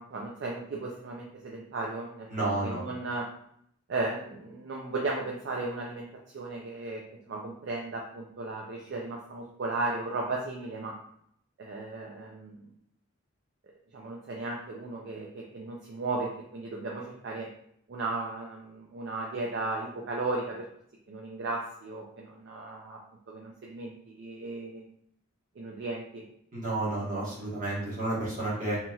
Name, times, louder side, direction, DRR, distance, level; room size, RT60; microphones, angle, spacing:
voice 1, 0.0-2.3 2.6-3.3 3.9-6.1 6.3-11.0 11.6-12.7 13.9-17.5 17.9-20.7 21.1-23.0 23.3-24.9 25.6-26.3, right 3 dB, 55° right, -1 dB, 0.3 m, -35 dB
voice 2, 2.3-2.8 26.5-28.8, right 2 dB, 35° right, -7 dB, 1.1 m, -31 dB
2.8 x 2.7 x 2.3 m, 0.69 s
head